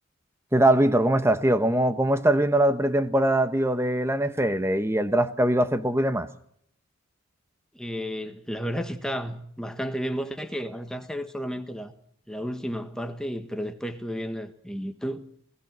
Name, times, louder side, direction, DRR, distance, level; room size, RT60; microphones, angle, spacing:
voice 1, 0.5-6.3, right 1 dB, 10° right, 1.0 m, -22 dB
voice 2, 7.7-11.9 12.3-15.2, equal, 5° left, 1.3 m, -32 dB
28.0 x 16.0 x 6.2 m
head